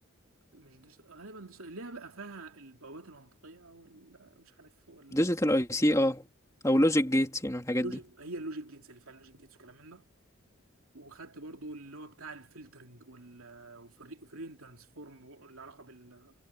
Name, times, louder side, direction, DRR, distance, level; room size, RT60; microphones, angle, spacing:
voice 1, 0.5-5.2 7.8-10.1 10.9-16.3, right 2 dB, 80° right, 2.8 m, -46 dB
voice 2, 5.1-6.3 6.6-8.0, equal, 15° left, 2.5 m, -26 dB
head